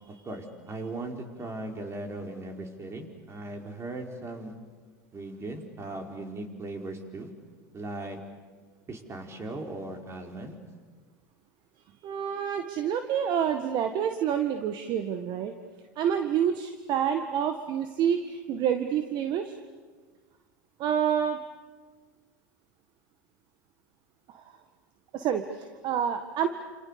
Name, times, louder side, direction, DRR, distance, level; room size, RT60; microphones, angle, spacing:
voice 1, 0.1-4.5 5.1-7.3 7.7-8.2 8.9-10.6, right 2 dB, 25° right, 3 dB, 5.2 m, -38 dB
voice 2, 12.0-15.5 16.0-19.5 20.8-21.4 24.3-24.4 25.1-26.5, right 8 dB, 50° right, 7 dB, 1.8 m, -28 dB
29.0 x 28.5 x 7.0 m, 1.5 s
hypercardioid pair, 85°, 10 cm